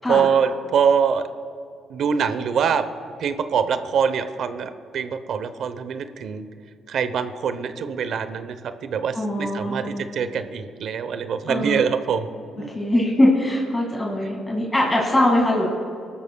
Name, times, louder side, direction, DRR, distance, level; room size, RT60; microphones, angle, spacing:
voice 1, 0.1-1.3 1.9-2.8 3.2-6.4 6.9-8.6 8.8-12.3 12.6-12.7, right 7 dB, 70° right, 10 dB, 0.8 m, -24 dB
voice 2, 9.1-10.0 11.5-11.8 12.7-15.7, left 1 dB, 15° left, -2 dB, 2.1 m, -21 dB
25.5 x 13.0 x 2.3 m, 2.5 s
cardioid pair, 90°, 0 cm